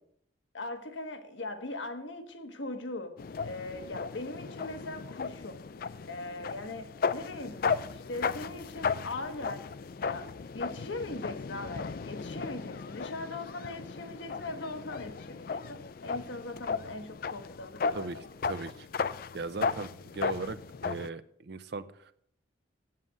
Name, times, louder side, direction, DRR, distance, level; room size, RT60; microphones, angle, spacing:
voice 1, 0.5-3.2 3.4-5.6 6.1-7.6 7.9-9.7 10.1-18.2, left 2 dB, 75° left, 7 dB, 1.2 m, -40 dB
sound 1, 3.2-21.1, left 5 dB, 50° left, 0.4 m, -36 dB
voice 2, 18.5-20.6 20.8-22.1, right 3 dB, 60° right, 12 dB, 0.6 m, -38 dB
7.9 x 7.5 x 7.4 m, 0.67 s
head